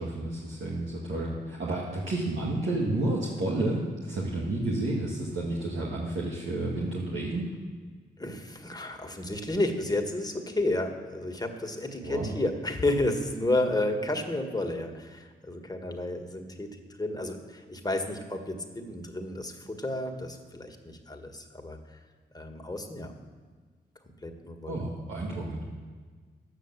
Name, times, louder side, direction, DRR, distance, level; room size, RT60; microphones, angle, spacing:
voice 1, 0.0-7.5 12.0-12.3 24.7-25.7, right 2 dB, 70° right, -5 dB, 1.8 m, -31 dB
voice 2, 8.2-22.0 22.3-23.1 24.2-24.8, left 1 dB, 20° left, 4 dB, 1.7 m, -31 dB
9.6 x 8.0 x 7.4 m, 1.5 s
supercardioid pair, 45°, 20 cm